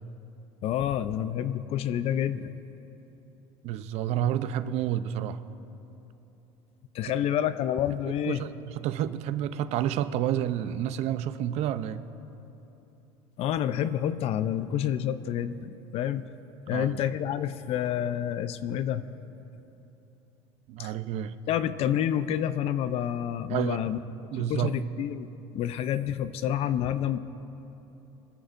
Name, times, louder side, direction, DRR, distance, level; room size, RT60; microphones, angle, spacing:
voice 1, 0.6-2.5 6.9-8.4 13.4-16.3 16.7-19.0 20.8-20.9 21.5-24.0 24.5-27.2, left 10 dB, 55° left, 13 dB, 0.6 m, -28 dB
voice 2, 3.6-5.4 8.3-12.0 16.7-17.0 20.7-21.3 23.5-23.9 24.3-24.7, right 11 dB, 60° right, 12 dB, 0.6 m, -29 dB
24.0 x 13.5 x 2.6 m, 3.0 s
supercardioid pair, 115°, 13 cm